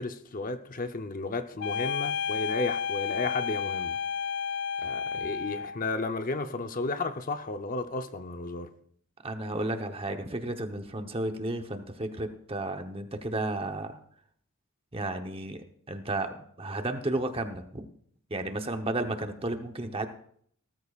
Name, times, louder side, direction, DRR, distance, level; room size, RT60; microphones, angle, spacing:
voice 1, 0.0-4.0 4.8-8.7, left 3 dB, 40° left, 8 dB, 0.7 m, -33 dB
sound 1, 1.6-5.8, left 6 dB, 85° left, 0.7 m, -31 dB
voice 2, 9.2-14.0 14.9-17.9 18.3-20.1, right 2 dB, 25° right, 6 dB, 0.9 m, -33 dB
18.0 x 13.5 x 2.4 m, 0.63 s
head